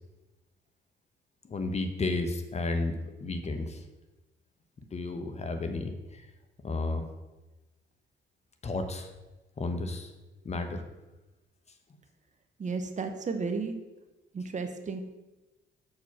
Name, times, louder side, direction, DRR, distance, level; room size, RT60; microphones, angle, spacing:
voice 1, 1.4-3.8 4.9-6.3 6.6-7.1 8.6-9.1 9.6-10.1 10.4-10.8, left 2 dB, 35° left, 7 dB, 0.9 m, -32 dB
voice 2, 12.6-13.8 14.3-15.0, right 4 dB, 40° right, 7 dB, 0.9 m, -33 dB
6.5 x 4.7 x 5.8 m, 1.1 s
cardioid pair, 90°, 20 cm